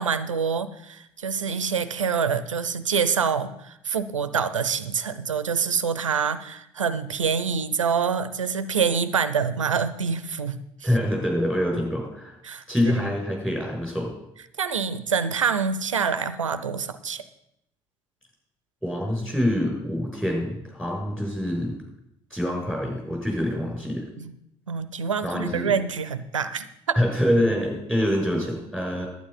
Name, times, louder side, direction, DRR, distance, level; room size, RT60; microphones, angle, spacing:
voice 1, 0.0-10.9 12.4-13.1 14.6-17.2 24.2-24.3 24.7-27.0, right 6 dB, 90° right, 14 dB, 0.5 m, -26 dB
voice 2, 10.8-12.4 12.7-14.1 18.8-21.8 22.3-24.0 25.2-25.7 27.0-29.1, left 1 dB, 5° left, 0 dB, 6.1 m, -25 dB
11.5 x 9.3 x 5.6 m, 0.78 s
figure-of-eight pair, 50°, 16 cm